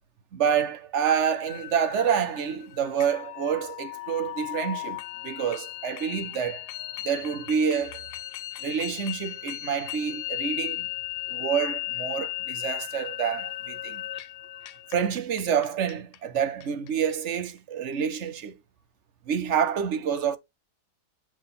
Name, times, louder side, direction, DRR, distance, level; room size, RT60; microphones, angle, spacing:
voice 1, 0.3-6.7 7.0-8.0 8.6-10.9 11.3-14.0 14.9-18.6 19.3-20.4, right 7 dB, 55° right, 1.0 m, -28 dB
sound 1, 1.5-17.4, left 17 dB, 85° left, 1.2 m, -36 dB
7.4 x 3.9 x 3.8 m
omnidirectional pair, 1.7 m